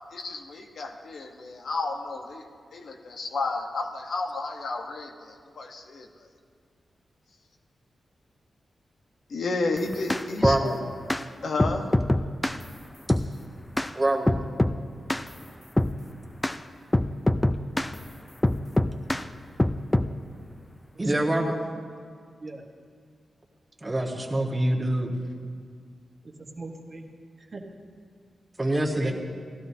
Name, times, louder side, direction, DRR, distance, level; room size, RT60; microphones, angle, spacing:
voice 1, 0.1-2.4 2.7-6.1 9.3-10.8 11.4-11.9, left 3 dB, 75° left, 3 dB, 1.1 m, -32 dB
sound 1, 9.8-10.6 11.1-11.2 11.6-12.6 13.1-13.3 13.8-13.9 14.3-14.8 15.1-15.3 15.8-16.0 16.4-16.6 16.9-17.9 18.4-19.2 19.6-20.1, left 1 dB, 15° left, 0.4 m, -24 dB
voice 2, 10.4-10.8 13.9-14.3 21.0-21.5 23.8-25.1 28.6-29.1, right 1 dB, 20° right, -1 dB, 1.5 m, -25 dB
voice 3, 26.2-27.0 27.4-27.6 28.9-29.1, right 3 dB, 45° right, 2 dB, 1.4 m, -40 dB
17.0 x 12.5 x 2.8 m, 2.1 s
cardioid pair, 75°, 0 cm